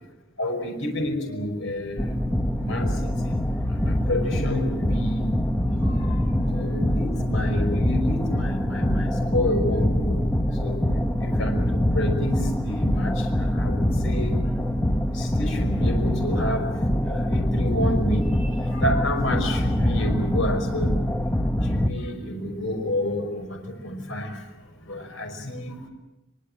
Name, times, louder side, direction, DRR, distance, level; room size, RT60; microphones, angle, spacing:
voice 1, 0.4-2.1 2.6-2.9 3.8-5.3 5.9-6.0 6.4-10.1 10.6-10.8 11.2-11.6 11.9-12.3 12.6-13.1 13.4-14.3 15.2-16.6 17.1-18.3 18.7-20.9 21.7-23.6 23.8-24.3 24.9-25.8, left 1 dB, 70° left, 4 dB, 5.5 m, -29 dB
sound 1, 2.0-21.9, left 1 dB, 10° left, 1.3 m, -24 dB
23.5 x 23.5 x 7.6 m, 0.99 s
head